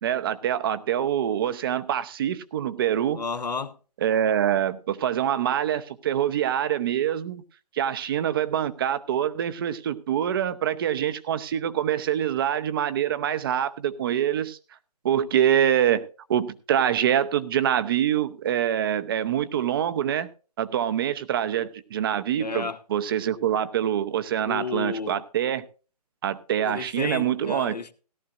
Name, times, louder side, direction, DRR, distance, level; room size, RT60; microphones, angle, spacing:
voice 1, 0.0-3.2 4.0-7.4 7.7-14.6 15.0-16.0 16.3-20.3 20.6-25.6 26.2-27.8, right 10 dB, 35° right, 0.8 m, -25 dB
voice 2, 3.1-3.8 22.4-22.8 24.5-25.2 26.6-27.9, left 4 dB, 85° left, 1.1 m, -32 dB
17.0 x 11.5 x 2.5 m
figure-of-eight pair, 150°, 21 cm